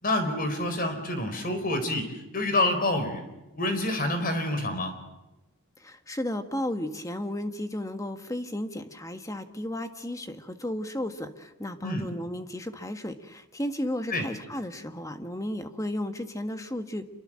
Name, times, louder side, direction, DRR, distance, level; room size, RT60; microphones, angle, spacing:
voice 1, 0.0-3.2 3.5-5.0 11.8-12.1 14.1-14.3, left 1 dB, 40° left, 8 dB, 4.3 m, -27 dB
voice 2, 5.8-17.0, left 1 dB, 15° left, 7 dB, 1.5 m, -34 dB
27.0 x 23.5 x 7.6 m, 1.0 s
head